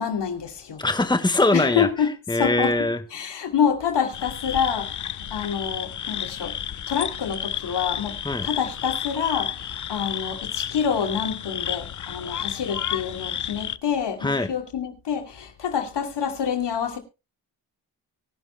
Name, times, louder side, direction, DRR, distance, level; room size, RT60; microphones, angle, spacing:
voice 1, 0.0-0.8 1.5-6.6 6.9-8.2 8.4-17.0, left 7 dB, 65° left, 2.8 m, -27 dB
voice 2, 0.8-1.9 2.3-3.0 8.2-8.5 14.2-14.5, left 2 dB, 10° left, 1.4 m, -22 dB
sound 1, 4.1-13.8, left 9 dB, 45° left, 0.7 m, -32 dB
24.0 x 11.0 x 2.2 m
cardioid pair, 60°, 44 cm